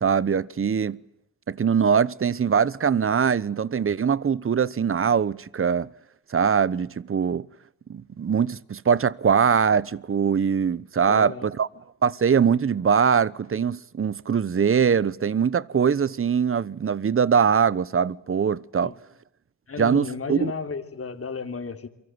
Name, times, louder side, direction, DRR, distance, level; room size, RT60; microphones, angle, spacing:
voice 1, 0.0-1.0 1.5-5.9 6.3-7.4 7.9-11.7 12.0-18.9 19.8-20.5, right 7 dB, 40° right, 1.0 m, -22 dB
voice 2, 11.0-11.5 18.8-18.9 19.7-21.9, left 5 dB, 40° left, 3.5 m, -33 dB
29.5 x 24.0 x 8.0 m
cardioid pair, 75°, 35 cm